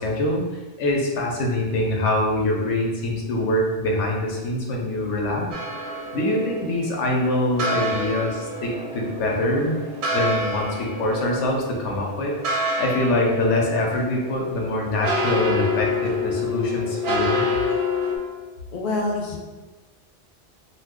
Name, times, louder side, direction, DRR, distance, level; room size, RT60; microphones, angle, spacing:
voice 1, 0.0-5.6 6.1-9.8 10.1-12.4 12.8-17.4, left 1 dB, 90° left, -1 dB, 1.0 m, -24 dB
sound 1, 5.5-18.2, left 2 dB, 60° right, 0.6 m, -28 dB
voice 2, 18.7-19.4, left 2 dB, 50° left, 0 dB, 0.5 m, -26 dB
2.5 x 2.4 x 3.5 m, 1.2 s
omnidirectional pair, 1.2 m